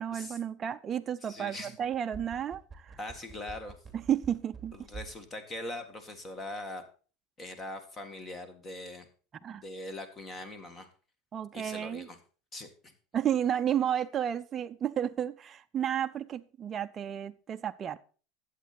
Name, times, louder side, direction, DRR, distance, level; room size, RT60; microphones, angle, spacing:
voice 1, 0.0-3.0 3.9-4.8 9.4-9.6 11.3-12.1 13.1-18.0, right 9 dB, 30° right, 8 dB, 0.5 m, -32 dB
voice 2, 1.2-1.7 3.0-3.8 4.7-6.8 7.4-9.1 9.5-10.9 11.5-12.2 12.5-12.9, left 1 dB, 25° left, 9 dB, 1.8 m, -41 dB
sound 1, 1.8-5.2 5.5-5.6, right 5 dB, 5° right, 2.5 m, -46 dB
11.5 x 8.2 x 4.3 m, 0.37 s
supercardioid pair, 130°, 0 cm